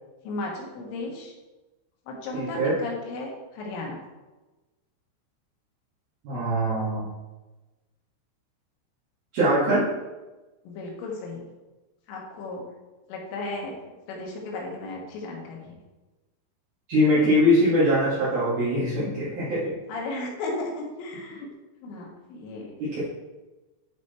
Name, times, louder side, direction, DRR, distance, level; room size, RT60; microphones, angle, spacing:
voice 1, 0.2-1.3 2.1-4.0 10.6-11.5 12.1-12.7 13.1-15.8 19.9-21.5 21.8-22.7, left 2 dB, 80° left, -1 dB, 4.1 m, -35 dB
voice 2, 2.3-2.8 6.2-7.0 9.3-9.8 16.9-19.7 22.8-23.0, equal, 55° right, -10 dB, 3.4 m, -22 dB
11.5 x 5.1 x 4.3 m, 1.1 s
omnidirectional pair, 5.7 m